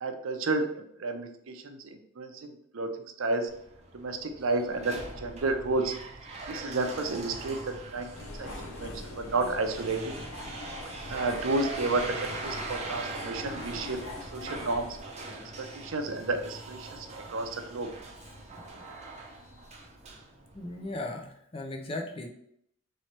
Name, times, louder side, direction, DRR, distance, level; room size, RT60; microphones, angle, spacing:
voice 1, 0.0-3.5 3.9-5.9 6.5-10.1 11.1-14.9 15.6-17.9, right 3 dB, 75° right, 7 dB, 0.6 m, -32 dB
sound 1, 3.5-21.0, right 3 dB, 30° right, 0.7 m, -42 dB
sound 2, 8.1-15.0, left 3 dB, 85° left, 0.7 m, -43 dB
voice 2, 20.5-22.3, left 2 dB, 25° left, 2 dB, 0.5 m, -37 dB
3.1 x 3.0 x 4.3 m, 0.72 s
head